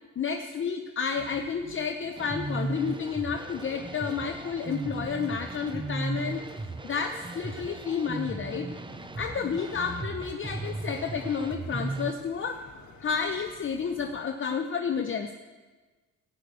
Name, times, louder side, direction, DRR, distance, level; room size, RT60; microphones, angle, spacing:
voice 1, 0.2-6.4 6.8-8.7 9.2-12.6 13.0-15.3, left 6 dB, 40° left, 6 dB, 0.9 m, -31 dB
sound 1, 1.2-2.3, right 3 dB, 65° right, 4.9 m, -50 dB
sound 2, 2.2-12.1, right 2 dB, 15° right, 0.8 m, -36 dB
sound 3, 2.4-14.2, left 5 dB, 75° left, 1.9 m, -52 dB
17.0 x 5.9 x 8.2 m, 1.3 s
cardioid pair, 90°, 30 cm